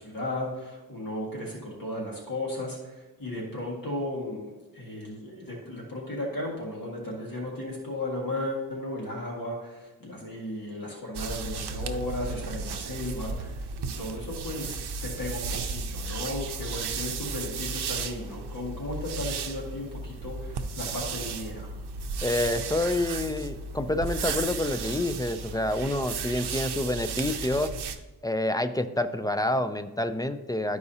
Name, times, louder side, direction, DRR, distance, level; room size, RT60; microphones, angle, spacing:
voice 1, 0.0-13.7 14.0-21.7, left 1 dB, 60° left, -2 dB, 1.8 m, -35 dB
sound 1, 11.1-28.0, right 4 dB, 85° right, 0.6 m, -34 dB
voice 2, 22.2-27.7 28.2-30.8, left 1 dB, 10° left, 9 dB, 0.3 m, -28 dB
12.5 x 4.8 x 2.8 m, 1.1 s
wide cardioid pair, 110°, 39 cm